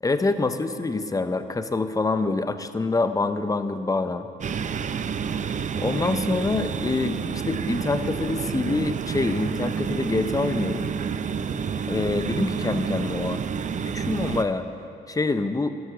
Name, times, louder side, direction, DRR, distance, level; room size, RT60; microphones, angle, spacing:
voice 1, 0.0-4.3 5.8-10.9 11.9-13.4 13.9-14.7 15.1-15.7, left 3 dB, 15° left, 10 dB, 0.7 m, -26 dB
sound 1, 4.4-14.4, right 6 dB, 40° right, 0.5 m, -29 dB
13.0 x 12.0 x 5.0 m, 2.7 s
cardioid pair, 90°, 20 cm